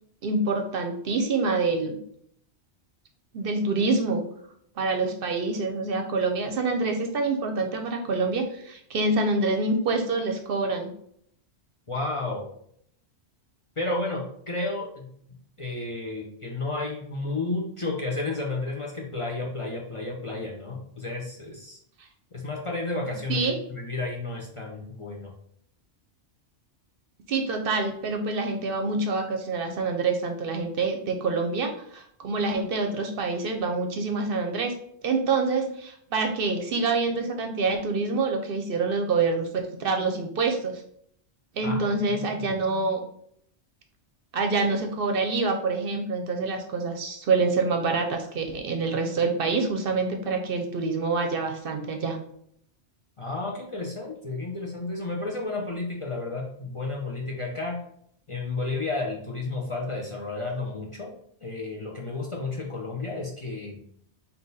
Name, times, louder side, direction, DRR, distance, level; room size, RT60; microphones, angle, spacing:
voice 1, 0.2-2.0 3.3-4.2 4.8-10.9 23.3-23.6 27.3-34.7 35.0-40.8 41.6-43.0 44.3-52.2, right 3 dB, 60° right, 4 dB, 0.7 m, -26 dB
voice 2, 11.9-12.4 13.8-15.1 15.6-21.8 22.3-25.3 41.6-42.4 53.2-57.8 58.3-61.1 61.4-63.8, left 2 dB, 35° left, -2 dB, 0.6 m, -32 dB
3.8 x 2.8 x 4.0 m, 0.68 s
omnidirectional pair, 1.2 m